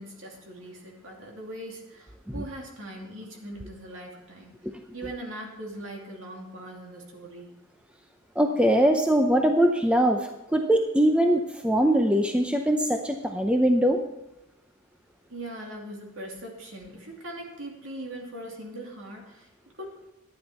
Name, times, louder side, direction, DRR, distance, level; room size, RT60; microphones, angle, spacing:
voice 1, 0.0-4.5 4.9-7.6 15.3-19.5 19.8-20.0, right 1 dB, 60° right, 0 dB, 2.6 m, -40 dB
voice 2, 8.4-14.0, right 1 dB, 5° right, 4 dB, 0.6 m, -22 dB
11.5 x 9.8 x 4.4 m, 0.97 s
head